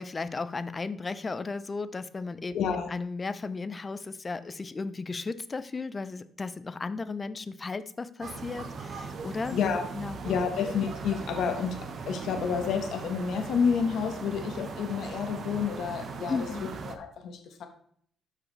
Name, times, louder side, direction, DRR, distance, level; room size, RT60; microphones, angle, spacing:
voice 1, 0.0-2.6 2.9-9.6 9.9-10.2 16.3-16.7, left 4 dB, 30° left, 13 dB, 0.6 m, -35 dB
voice 2, 2.5-2.9 9.5-9.8 10.2-16.5 16.8-17.7, left 6 dB, 75° left, 5 dB, 1.2 m, -29 dB
sound 1, 8.2-17.0, right 4 dB, 55° right, 1.0 m, -39 dB
13.0 x 4.8 x 3.3 m, 0.63 s
cardioid pair, 90°, 0 cm